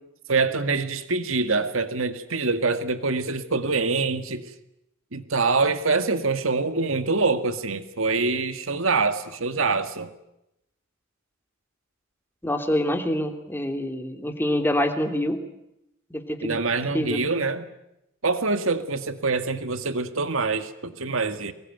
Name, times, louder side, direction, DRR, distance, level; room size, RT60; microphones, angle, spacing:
voice 1, 0.3-4.5 5.1-10.1 16.4-17.7 18.2-21.5, right 3 dB, 70° right, 10 dB, 2.0 m, -25 dB
voice 2, 12.4-15.4 16.1-16.6 16.9-17.2, left 1 dB, 10° left, 5 dB, 2.9 m, -26 dB
24.5 x 21.5 x 9.3 m, 0.86 s
head